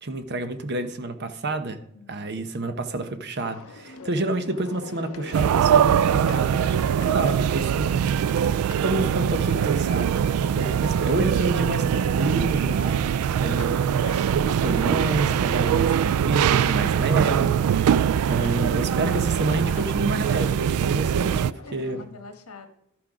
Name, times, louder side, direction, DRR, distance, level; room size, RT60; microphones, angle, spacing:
voice 1, 0.0-1.8 2.1-7.9 8.8-10.1 10.5-13.0 13.4-13.8 14.3-17.5 18.3-22.0, right 2 dB, 50° right, 0.9 m, -28 dB
voice 2, 1.9-2.3 8.4-8.8 21.7-22.7, left 4 dB, 85° left, 1.4 m, -45 dB
sound 1, 3.4-22.0, left 4 dB, 70° left, 0.8 m, -43 dB
sound 2, 5.3-21.5, right 8 dB, 85° right, 0.3 m, -22 dB
12.0 x 6.0 x 4.9 m
head